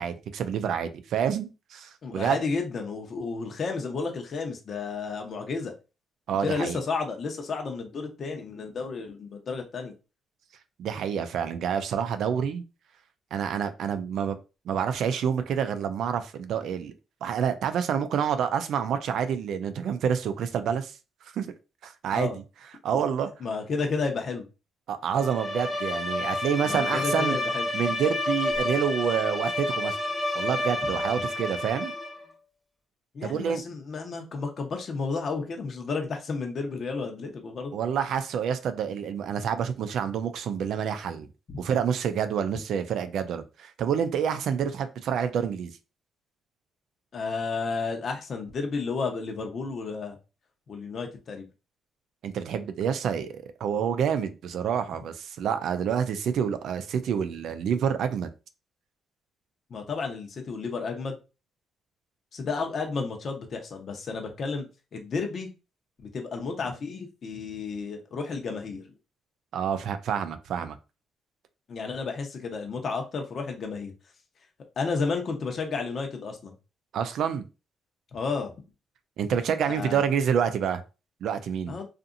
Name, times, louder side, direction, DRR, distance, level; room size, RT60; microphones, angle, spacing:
voice 1, 0.0-2.4 6.3-6.8 10.8-12.6 13.3-14.4 14.7-16.9 17.2-20.9 21.3-21.5 21.8-22.3 22.8-23.3 24.9-27.4 27.7-30.0 30.3-31.9 33.2-33.6 37.7-41.3 41.6-45.7 52.2-58.3 69.5-70.8 76.9-77.5 79.2-80.8 81.2-81.8, right 8 dB, 75° right, 0.4 m, -28 dB
voice 2, 2.0-5.7 6.4-9.9 22.1-22.4 23.4-24.4 26.6-27.7 31.2-31.3 33.1-37.8 47.1-50.2 50.7-51.5 59.7-61.2 62.3-64.7 64.9-65.5 66.1-68.9 71.7-73.9 74.8-76.5 78.1-78.5 79.7-80.1 81.7-81.9, left 4 dB, 50° left, 0.8 m, -32 dB
Bowed string instrument, 25.1-32.2, left 1 dB, 10° left, 0.9 m, -29 dB
2.7 x 2.5 x 2.5 m
cardioid pair, 90°, 0 cm